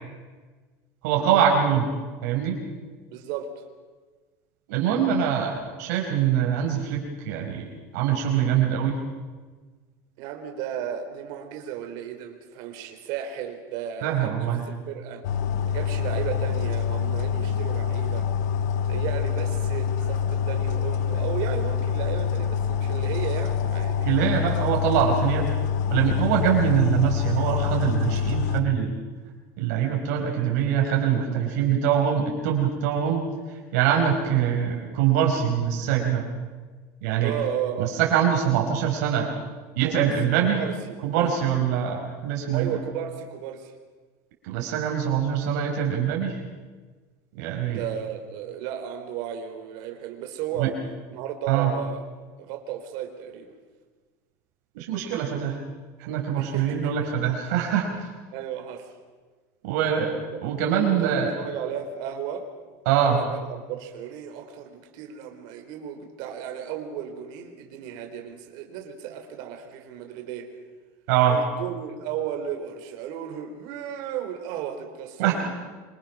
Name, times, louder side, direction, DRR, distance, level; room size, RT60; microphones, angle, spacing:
voice 1, 1.0-1.9 2.2-2.6 4.7-7.7 7.9-9.0 14.0-14.6 24.0-25.5 25.9-28.9 29.6-33.2 33.7-36.2 37.0-37.3 37.8-39.3 39.8-40.6 41.0-42.8 44.4-46.4 47.4-47.8 50.6-50.7 51.5-51.7 54.7-55.6 56.0-57.9 59.6-60.2 60.4-61.3 62.8-63.2 71.1-71.4 75.2-75.5, right 8 dB, 75° right, 0 dB, 4.7 m, -23 dB
voice 2, 3.1-3.6 10.2-15.2 15.6-18.3 18.8-24.2 30.2-31.8 37.2-38.0 39.8-41.4 42.5-43.7 47.6-50.8 51.1-52.0 52.4-53.6 56.4-56.8 58.3-58.9 60.8-62.5 63.0-70.5 71.3-75.5, right 9 dB, 55° right, 5 dB, 3.8 m, -34 dB
sound 1, 15.2-28.6, left 7 dB, 90° left, 1.4 m, -26 dB
26.0 x 25.0 x 6.1 m, 1.4 s
cardioid pair, 170°, 9 cm